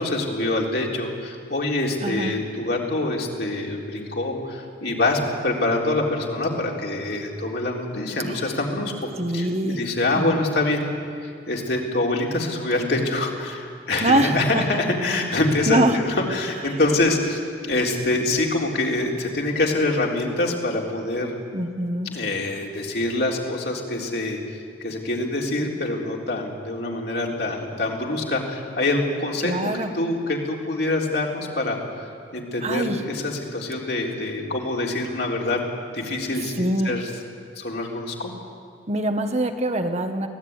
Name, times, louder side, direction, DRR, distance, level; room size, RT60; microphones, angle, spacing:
voice 1, 0.0-10.8 11.2-21.3 22.1-35.6 35.9-37.1 37.6-38.3, left 2 dB, 65° left, -1 dB, 3.9 m, -25 dB
voice 2, 2.0-2.3 8.2-8.3 9.2-9.8 10.1-10.4 14.0-14.6 15.7-16.0 16.7-16.8 21.5-22.1 29.4-29.9 32.6-33.0 36.6-36.9 38.9-40.3, right 1 dB, 40° right, 6 dB, 1.4 m, -24 dB
23.5 x 17.5 x 9.7 m, 2.3 s
head